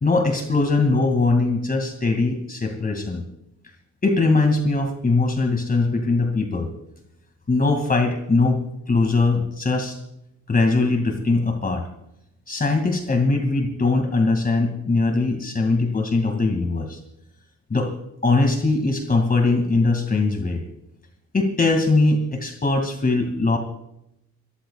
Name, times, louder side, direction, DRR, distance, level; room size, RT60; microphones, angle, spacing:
voice 1, 0.0-3.2 4.0-6.7 7.5-10.0 10.5-11.9 12.5-17.0 17.7-17.9 18.2-20.6 21.3-23.6, left 3 dB, 30° left, 4 dB, 2.4 m, -21 dB
27.0 x 14.0 x 2.4 m, 0.79 s
cardioid pair, 90°, 30 cm